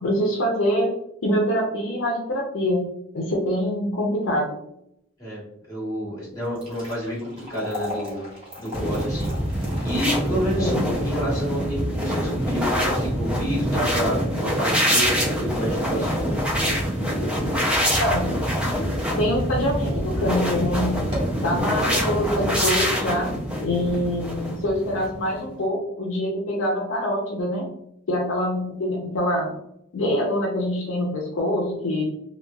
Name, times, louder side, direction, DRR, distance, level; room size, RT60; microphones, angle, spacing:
voice 1, 0.0-0.9 1.2-2.9 3.1-4.6 10.6-10.8 18.0-18.4 19.2-21.0 21.4-23.3 23.6-27.7 28.1-29.5 29.9-32.0, equal, 70° left, 0 dB, 0.5 m, -24 dB
voice 2, 5.7-8.2 8.6-10.7 11.0-16.4, equal, 15° left, -7 dB, 1.3 m, -29 dB
sound 1, 6.3-18.6 19.1-19.2 19.9-20.1 20.4-20.5 20.9-21.5, left 1 dB, 30° right, 1.1 m, -40 dB
sound 2, 8.7-25.4, equal, 5° right, 0.5 m, -25 dB
2.9 x 2.2 x 2.3 m, 0.77 s
head